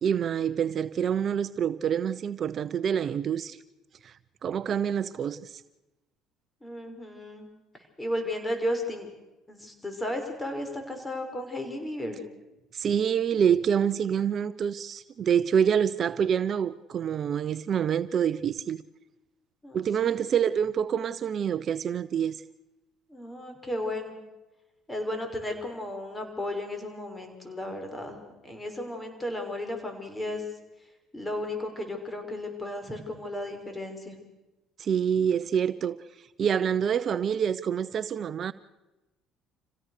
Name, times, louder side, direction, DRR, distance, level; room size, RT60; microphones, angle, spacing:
voice 1, 0.0-3.6 4.0-4.1 4.4-5.6 12.7-18.8 19.7-22.4 34.8-36.0 36.4-38.5, right 8 dB, 50° right, 0.7 m, -26 dB
voice 2, 6.6-7.5 8.0-9.1 9.5-12.2 19.6-20.2 23.1-24.1 24.9-30.4 31.1-34.2, left 1 dB, 15° left, 5.9 m, -34 dB
27.5 x 16.5 x 6.7 m
supercardioid pair, 70°, 0 cm